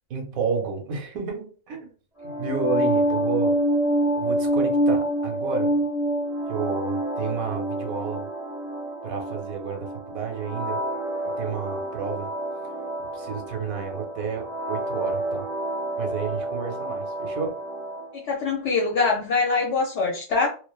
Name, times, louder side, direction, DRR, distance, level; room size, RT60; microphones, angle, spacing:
voice 1, 0.1-1.9 2.2-3.6 4.1-5.8 6.5-8.3 9.0-10.8 11.4-12.3 13.1-15.5 16.0-17.6, right 5 dB, 90° right, 1.1 m, -31 dB
sound 1, 2.2-18.1, right 1 dB, 10° right, 0.3 m, -27 dB
voice 2, 18.1-20.5, left 4 dB, 65° left, 0.8 m, -23 dB
2.4 x 2.4 x 2.2 m
omnidirectional pair, 1.4 m